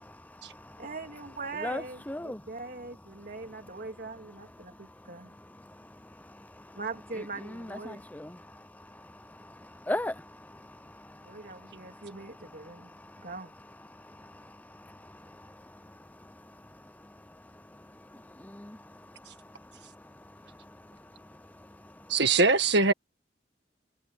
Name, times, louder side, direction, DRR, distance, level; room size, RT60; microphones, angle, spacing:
voice 1, 0.0-0.9 1.6-2.4 4.7-6.8 7.4-13.3 13.9-22.2, left 1 dB, 10° left, 0.6 m, -43 dB
voice 2, 0.8-5.4 6.7-8.0 11.2-12.9 13.2-13.5, right 3 dB, 50° right, 3.2 m, -41 dB
voice 3, 22.1-22.9, right 3 dB, 65° right, 1.8 m, -22 dB
head